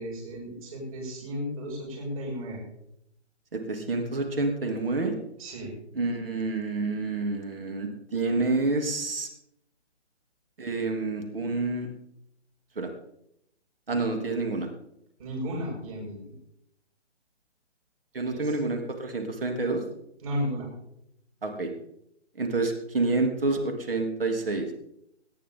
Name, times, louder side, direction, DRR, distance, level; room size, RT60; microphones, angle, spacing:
voice 1, 0.0-2.6 5.4-5.7 15.2-16.3 18.3-18.6 20.2-20.7, equal, 30° right, -2 dB, 6.8 m, -34 dB
voice 2, 3.5-5.2 5.9-9.3 10.6-11.9 12.8-12.9 13.9-14.7 18.1-19.8 21.4-21.7 22.4-24.7, right 3 dB, 50° right, 4 dB, 3.1 m, -28 dB
21.5 x 10.0 x 3.9 m, 0.77 s
hypercardioid pair, 165°, 35 cm